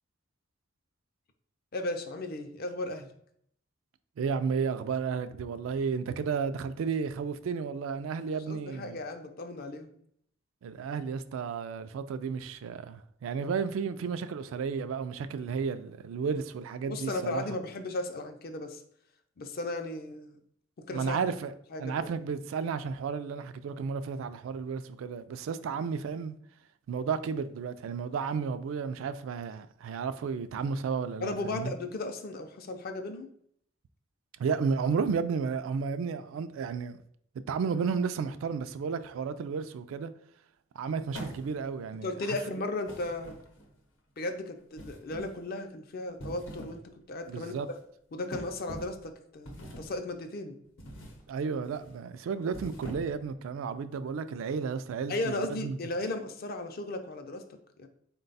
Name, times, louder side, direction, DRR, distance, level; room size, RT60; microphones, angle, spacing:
voice 1, 1.7-3.1 8.5-9.9 16.9-18.8 19.4-20.4 20.8-21.2 21.7-22.1 31.2-33.3 42.0-43.4 44.2-46.8 47.1-47.5 48.1-50.6 55.1-57.4 57.8-57.9, left 2 dB, 50° left, 0.5 m, -35 dB
voice 2, 4.2-9.0 10.6-17.4 20.9-21.5 21.8-26.3 26.9-31.7 34.4-37.0 37.5-40.1 40.8-42.1 47.3-47.7 51.3-55.8, right 5 dB, 80° right, 0.3 m, -32 dB
sound 1, 41.1-41.8 42.9-43.8 44.8-45.4 46.1-46.9 47.2-47.5 48.3-49.0 49.5-50.0 50.8-51.2 51.6-51.9 52.4-53.3, equal, 80° left, 0.8 m, -44 dB
4.0 x 2.2 x 3.9 m
head